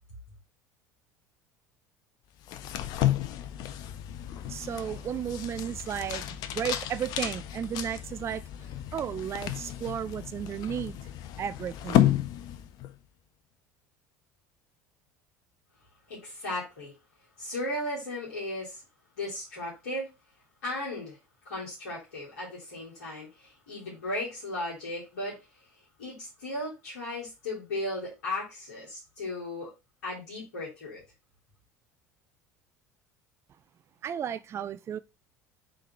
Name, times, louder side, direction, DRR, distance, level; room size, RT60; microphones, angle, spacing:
sound 1, 2.4-13.0, left 12 dB, 50° left, 0.6 m, -32 dB
voice 1, 4.5-8.4 8.9-11.0 11.4-12.1 34.0-35.0, right 9 dB, 30° right, 0.4 m, -34 dB
voice 2, 16.1-16.9 17.4-18.8 19.2-20.1 20.6-21.2 21.4-25.7 26.0-29.7 30.0-31.0, left 1 dB, 65° left, 3.7 m, -36 dB
7.6 x 3.9 x 3.2 m
figure-of-eight pair, 65°, 9 cm